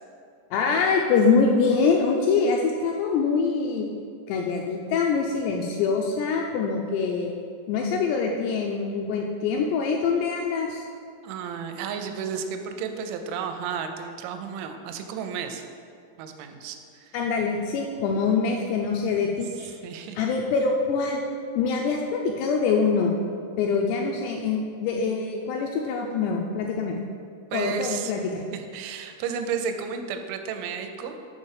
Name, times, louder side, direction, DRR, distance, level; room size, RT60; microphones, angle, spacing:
voice 1, 0.5-3.9 4.3-7.3 7.7-10.8 17.1-19.8 20.2-21.2 21.6-23.1 23.6-27.0 27.5-28.5, left 5 dB, 85° left, 0 dB, 2.4 m, -24 dB
voice 2, 11.2-15.6 16.2-17.2 19.8-20.2 27.5-28.1 28.5-31.2, right 6 dB, 85° right, 6 dB, 3.0 m, -32 dB
7.3 x 4.2 x 6.5 m, 2.3 s
omnidirectional pair, 5.3 m